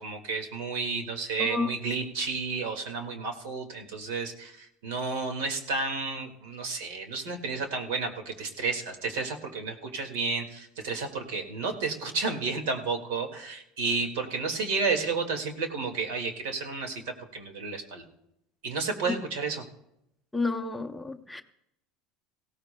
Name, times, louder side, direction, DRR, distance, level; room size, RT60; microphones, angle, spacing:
voice 1, 0.0-18.0 18.6-19.6, right 4 dB, 80° right, 4 dB, 2.0 m, -31 dB
voice 2, 1.4-1.7 19.1-19.2 20.3-21.4, left 3 dB, 5° left, 4 dB, 0.6 m, -30 dB
18.5 x 16.5 x 2.2 m, 0.83 s
supercardioid pair, 140°, 0 cm